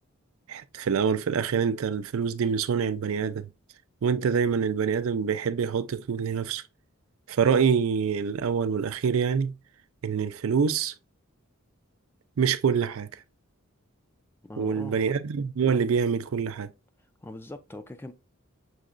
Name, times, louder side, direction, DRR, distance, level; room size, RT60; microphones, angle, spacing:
voice 1, 0.5-3.5 4.0-6.6 7.3-9.5 10.0-10.9 12.4-13.1 14.6-16.7, right 6 dB, 65° right, 0.4 m, -26 dB
voice 2, 14.4-15.1 17.2-18.1, left 1 dB, 10° left, 0.3 m, -41 dB
6.2 x 2.8 x 2.4 m
head